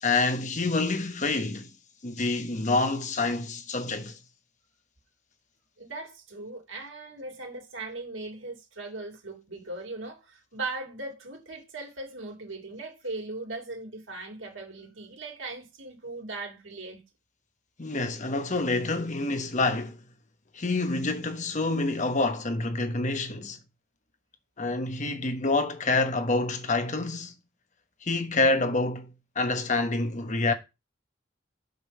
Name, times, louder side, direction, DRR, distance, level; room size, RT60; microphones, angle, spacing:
voice 1, 0.0-1.7 2.0-4.2 17.8-20.0 20.5-23.6 24.6-27.3 28.0-30.5, left 3 dB, 40° left, 1.1 m, -27 dB
voice 2, 5.8-17.0, right 3 dB, 90° right, 2.9 m, -39 dB
5.4 x 5.2 x 6.5 m
head